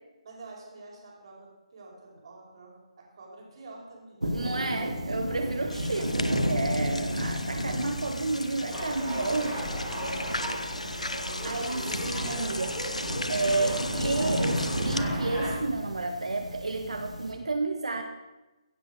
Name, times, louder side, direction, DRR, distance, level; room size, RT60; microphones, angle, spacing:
voice 1, 0.2-4.2, right 3 dB, 50° right, -1 dB, 5.1 m, -49 dB
voice 2, 4.2-9.6 11.4-12.8 13.3-18.0, right 3 dB, 70° right, 5 dB, 1.3 m, -31 dB
sound 1, 4.2-17.3, equal, 85° right, 2.7 m, -33 dB
sound 2, 5.7-15.0, left 1 dB, 85° left, 0.9 m, -37 dB
sound 3, 8.7-15.5, equal, 5° right, 4.7 m, -37 dB
16.0 x 7.6 x 6.6 m, 1.1 s
figure-of-eight pair, 145°, 4 cm